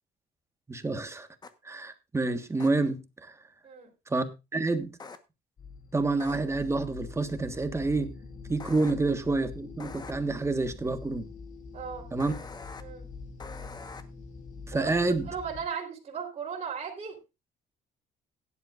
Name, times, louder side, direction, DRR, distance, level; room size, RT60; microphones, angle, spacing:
voice 1, 0.7-1.3 1.6-3.4 4.1-4.9 5.9-8.1 8.5-11.3 12.1-12.3 14.7-15.3, right 3 dB, 15° right, 1.4 m, -28 dB
sound 1, 1.4-1.5 2.6-2.7 5.0-5.2 6.2-6.4 8.6-8.9 9.8-10.1 12.2-12.8 13.4-14.0, left 4 dB, 25° left, 1.2 m, -43 dB
sound 2, 5.6-15.7, left 4 dB, 45° left, 2.7 m, -44 dB
voice 2, 11.7-12.1 12.8-13.1 14.7-14.9 15.3-17.2, right 6 dB, 40° right, 3.9 m, -36 dB
16.0 x 11.0 x 2.5 m
cardioid pair, 110°, 17 cm